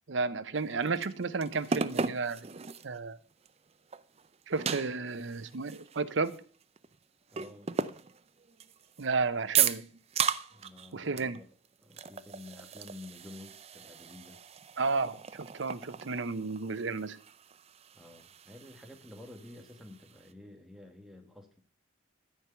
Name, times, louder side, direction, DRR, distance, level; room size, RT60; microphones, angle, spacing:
voice 1, 0.1-2.4 2.8-3.2 4.5-6.4 9.0-9.9 10.9-11.4 14.8-17.2, right 4 dB, 70° right, 0.7 m, -32 dB
sound 1, 0.6-3.0 3.5-3.6 3.9-7.0 7.3-9.1 9.5-10.9 11.2-11.4 11.6-20.3, right 7 dB, 30° right, 0.5 m, -36 dB
voice 2, 7.3-7.7 10.5-11.5 11.8-14.4 17.9-21.6, left 2 dB, ahead, 1.4 m, -50 dB
13.0 x 4.6 x 6.8 m
head